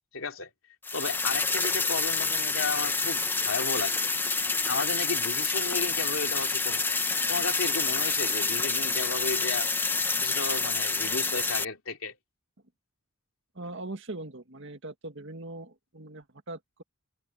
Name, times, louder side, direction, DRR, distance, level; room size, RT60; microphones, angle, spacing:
voice 1, 0.1-0.5 0.9-4.1 4.7-7.0 7.3-9.7 10.2-12.2, left 4 dB, 80° left, 3.0 m, -33 dB
sound 1, 0.8-11.6, left 3 dB, 10° left, 0.7 m, -28 dB
voice 2, 13.6-16.8, right 2 dB, 65° right, 2.0 m, -41 dB
head